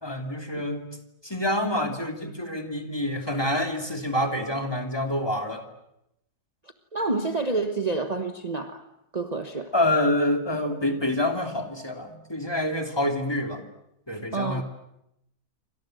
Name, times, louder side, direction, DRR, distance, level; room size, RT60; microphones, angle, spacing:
voice 1, 0.0-0.9 1.2-5.6 9.7-13.6 14.1-14.6, left 1 dB, 15° left, 4 dB, 2.9 m, -27 dB
voice 2, 6.9-8.8 9.1-9.7 14.3-14.6, right 3 dB, 25° right, 7 dB, 1.4 m, -28 dB
29.0 x 25.5 x 7.9 m, 0.85 s
omnidirectional pair, 1.7 m